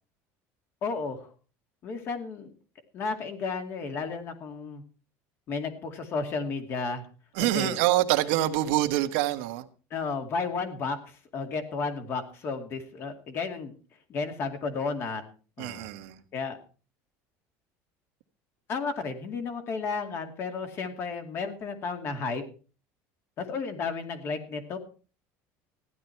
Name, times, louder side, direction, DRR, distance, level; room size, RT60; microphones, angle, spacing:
voice 1, 0.8-1.3 1.8-2.5 2.9-4.8 5.5-7.1 7.4-7.8 9.9-13.7 14.1-15.2 15.6-15.9 16.3-16.6 18.7-22.4 23.4-24.8, left 4 dB, 40° left, 6 dB, 2.4 m, -33 dB
voice 2, 7.3-9.7 15.6-16.2, right 14 dB, 85° right, 8 dB, 1.4 m, -25 dB
15.5 x 11.5 x 4.6 m, 0.37 s
cardioid pair, 160°, 6 cm